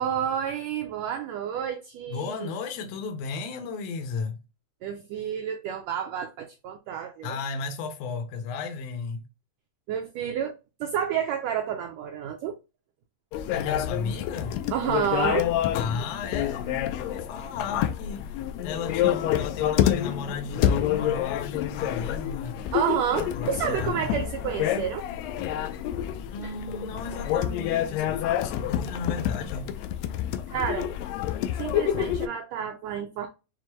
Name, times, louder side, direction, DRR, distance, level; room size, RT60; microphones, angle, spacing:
voice 1, 0.0-2.5 4.8-7.4 9.9-10.5 10.8-12.6 14.7-15.5 22.7-25.1 26.4-26.5 30.5-30.9 31.6-33.3, right 9 dB, 85° right, 1.5 m, -30 dB
voice 2, 2.1-4.4 7.2-9.2 13.5-14.5 15.7-18.3 18.6-22.6 23.3-24.2 26.3-29.7, left 5 dB, 70° left, 1.6 m, -34 dB
sound 1, 13.3-32.3, left 11 dB, 90° left, 1.5 m, -28 dB
6.2 x 2.1 x 2.9 m
omnidirectional pair, 3.6 m